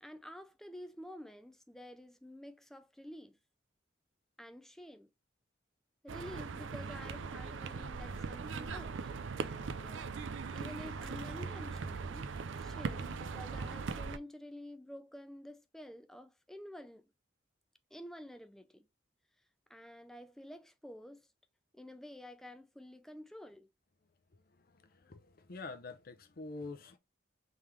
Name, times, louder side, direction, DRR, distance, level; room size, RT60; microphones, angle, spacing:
voice 1, 0.0-3.4 4.4-5.1 6.0-9.0 9.3-10.2 10.5-12.3 12.5-17.1 17.9-18.9 19.7-21.3 21.7-23.7, equal, ahead, 0.4 m, -50 dB
sound 1, 6.1-14.2, right 4 dB, 80° right, 0.5 m, -40 dB
voice 2, 24.9-27.0, left 3 dB, 50° left, 0.6 m, -46 dB
3.7 x 3.4 x 3.0 m
head